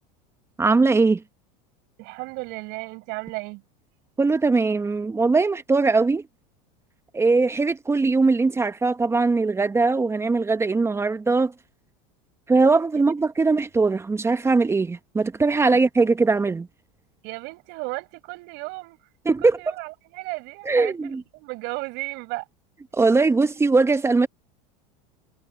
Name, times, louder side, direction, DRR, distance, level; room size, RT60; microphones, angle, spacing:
voice 1, 0.6-1.2 4.2-6.2 7.1-11.5 12.5-16.7 19.3-19.6 20.7-21.2 22.9-24.3, right 3 dB, 15° right, 1.1 m, -20 dB
voice 2, 2.0-3.6 15.7-15.8 17.2-19.0 19.4-22.5, right 26 dB, 60° right, 7.0 m, -34 dB
supercardioid pair, 115°, 20 cm